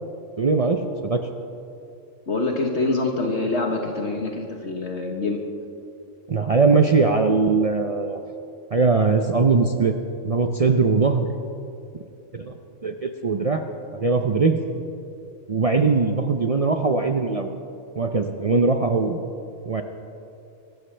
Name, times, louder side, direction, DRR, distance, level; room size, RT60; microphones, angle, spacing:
voice 1, 0.4-1.2 6.3-8.2 8.7-9.9 10.2-11.3 12.3-12.5 12.8-13.6 13.9-14.6 15.5-17.5 18.0-19.2 19.7-19.8, right 4 dB, 65° right, 5 dB, 0.3 m, -20 dB
voice 2, 2.3-5.4, left 3 dB, 55° left, 2 dB, 1.4 m, -25 dB
24.0 x 13.0 x 3.3 m, 2.7 s
omnidirectional pair, 1.5 m